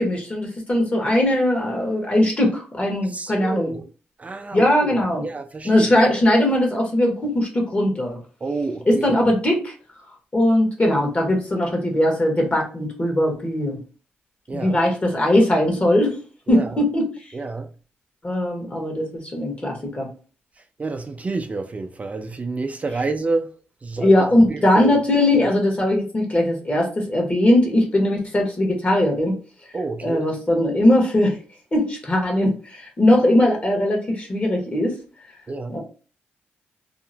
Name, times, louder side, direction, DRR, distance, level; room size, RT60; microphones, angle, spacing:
voice 1, 0.0-3.8 4.5-5.2 5.6-8.2 8.9-9.7 10.3-13.8 14.5-16.2 16.5-17.1 18.2-20.1 24.0-29.3 30.0-31.4 31.7-35.0 35.7-35.8, left 1 dB, 35° left, 1.2 m, -20 dB
voice 2, 3.0-3.8 4.2-5.0 5.2-5.9 8.4-9.2 14.5-14.8 16.5-16.8 17.3-17.7 20.8-23.5 23.8-25.0 25.4-25.5 29.7-30.2 35.5-35.8, right 3 dB, 35° right, 0.4 m, -29 dB
2.8 x 2.1 x 2.6 m
cardioid pair, 65°, 4 cm